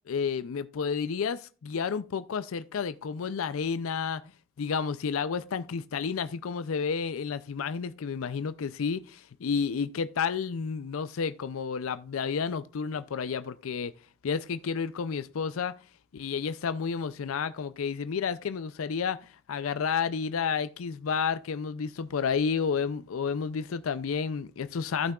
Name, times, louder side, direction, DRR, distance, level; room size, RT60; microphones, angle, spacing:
voice 1, 0.1-4.2 4.6-13.9 14.2-15.8 16.1-25.1, left 6 dB, 80° left, 0.4 m, -31 dB
15.5 x 5.8 x 2.4 m
head